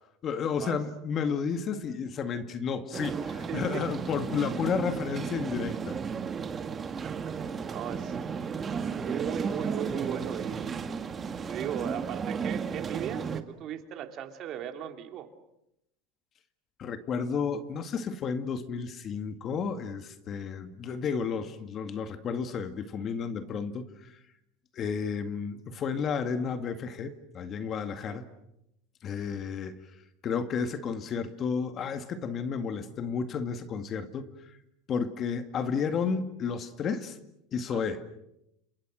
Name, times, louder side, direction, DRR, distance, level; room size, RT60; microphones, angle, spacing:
voice 1, 0.2-6.0 16.8-24.1 24.7-28.3 29.0-29.8 30.2-34.3 34.9-37.2 37.5-38.0, left 6 dB, 35° left, 2.1 m, -32 dB
sound 1, 2.9-13.4, right 6 dB, 25° right, 1.9 m, -34 dB
voice 2, 3.5-3.8 7.0-8.1 9.0-10.9 11.5-15.3 28.1-28.2 37.7-37.8, right 10 dB, 45° right, 3.0 m, -38 dB
30.0 x 27.5 x 6.4 m
supercardioid pair, 125°, 0 cm